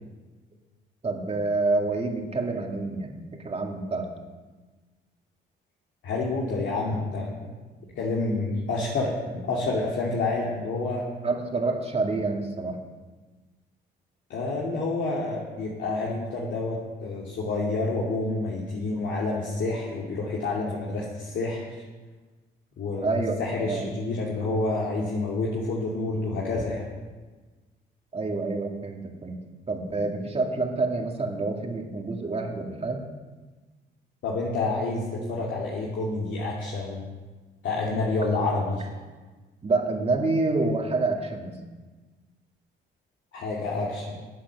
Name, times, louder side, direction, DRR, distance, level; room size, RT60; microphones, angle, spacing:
voice 1, 1.0-4.1 11.2-12.8 23.0-23.9 28.1-29.4 29.7-33.0 39.6-41.6, right 3 dB, 30° right, 2 dB, 2.2 m, -27 dB
voice 2, 6.0-7.5 8.0-11.1 14.3-21.7 22.8-26.9 34.2-37.0 37.6-38.8 43.3-44.1, left 3 dB, 70° left, -4 dB, 2.6 m, -28 dB
11.0 x 8.6 x 6.9 m, 1.3 s
cardioid pair, 90°, 20 cm